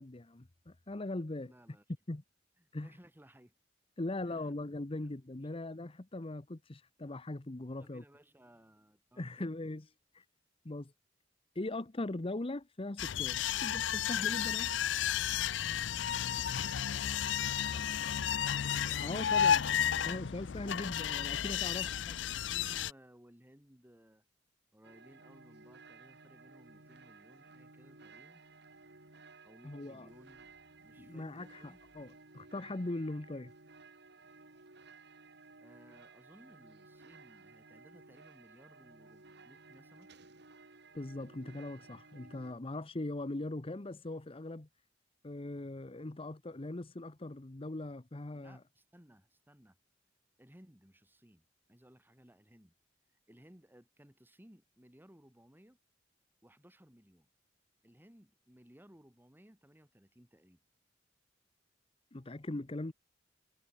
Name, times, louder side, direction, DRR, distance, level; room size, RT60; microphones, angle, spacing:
voice 1, 0.0-1.5 2.1-2.2 2.7-2.9 4.0-8.0 9.2-9.9 10.1-10.2 10.6-10.9 11.5-14.7 19.0-19.7 20.0-21.9 29.6-30.1 31.0-33.5 40.9-44.7 45.2-48.6 62.1-62.9, left 2 dB, 30° left, 0.9 m, -40 dB
voice 2, 1.4-1.8 2.6-3.5 4.2-4.5 4.9-5.1 5.5-5.6 7.8-9.5 17.5-17.8 21.8-24.2 24.7-28.4 29.4-30.5 30.8-31.8 35.6-40.1 48.3-49.8 50.4-52.7 53.3-55.8 56.4-57.3 57.8-60.6, equal, 10° right, 2.9 m, -60 dB
sound 1, 13.0-22.9, left 9 dB, 70° left, 0.5 m, -32 dB
sound 2, 24.8-42.5, right 3 dB, 65° right, 3.2 m, -57 dB
sound 3, 30.1-32.2, right 1 dB, 85° right, 6.1 m, -73 dB
head